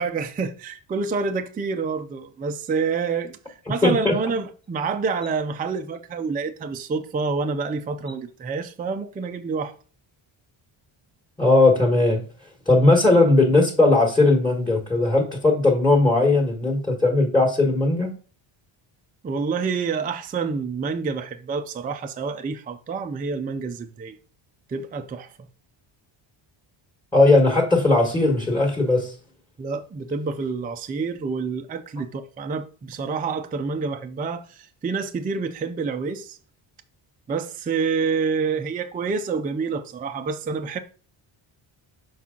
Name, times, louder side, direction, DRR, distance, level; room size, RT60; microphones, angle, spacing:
voice 1, 0.0-9.7 19.2-24.2 24.7-25.3 29.6-36.4 37.3-40.8, right 5 dB, 20° right, 0.4 m, -28 dB
voice 2, 3.8-4.2 11.4-12.2 12.7-18.1 27.1-29.1, left 2 dB, 10° left, 1.3 m, -18 dB
5.9 x 4.7 x 3.7 m
cardioid pair, 130°, 48 cm